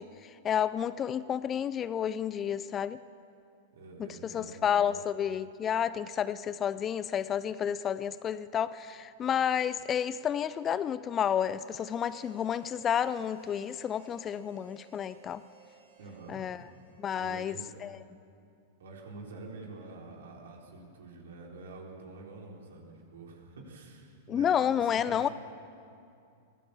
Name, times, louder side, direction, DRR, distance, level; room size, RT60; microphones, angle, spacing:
voice 1, 0.0-3.0 4.0-15.4 16.3-16.6 17.0-17.6 17.8-18.0 24.3-25.3, left 9 dB, 25° left, 16 dB, 0.5 m, -30 dB
voice 2, 3.7-5.0 16.0-16.4 17.1-17.7 18.8-25.3, right 3 dB, 60° right, 0 dB, 4.1 m, -47 dB
Harmonica, 11.6-17.4, right 5 dB, 80° right, 5.7 m, -58 dB
23.0 x 17.5 x 7.2 m, 2.5 s
figure-of-eight pair, 95°, 0 cm